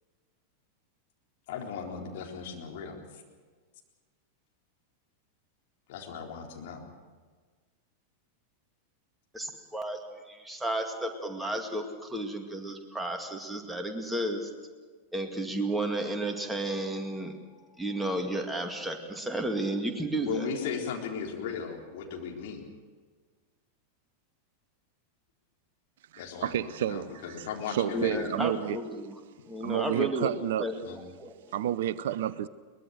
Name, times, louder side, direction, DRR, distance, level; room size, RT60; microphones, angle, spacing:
voice 1, 1.5-3.0 5.9-6.9 20.2-22.6 26.2-28.3 30.8-31.0, left 6 dB, 50° left, 3.9 m, -36 dB
voice 2, 9.3-10.0 10.3-14.5 15.1-17.4 17.8-20.5 27.9-29.2 29.5-30.3 30.6-30.7 31.2-31.3, right 1 dB, 5° right, 2.3 m, -32 dB
voice 3, 26.1-28.8 29.6-30.7 31.5-32.5, right 11 dB, 55° right, 0.6 m, -30 dB
22.5 x 21.0 x 6.6 m
figure-of-eight pair, 90°, 0 cm